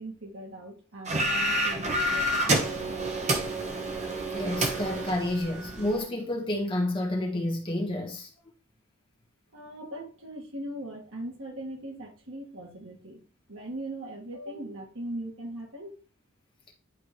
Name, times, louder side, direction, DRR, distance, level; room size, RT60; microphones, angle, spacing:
voice 1, 0.0-3.4 9.5-13.2 13.5-16.0, right 1 dB, 70° right, 1.9 m, -40 dB
sound 1, 1.1-6.0, right 1 dB, 30° right, 1.0 m, -28 dB
voice 2, 4.3-8.3, left 1 dB, 25° left, 1.4 m, -30 dB
10.5 x 3.8 x 3.1 m
head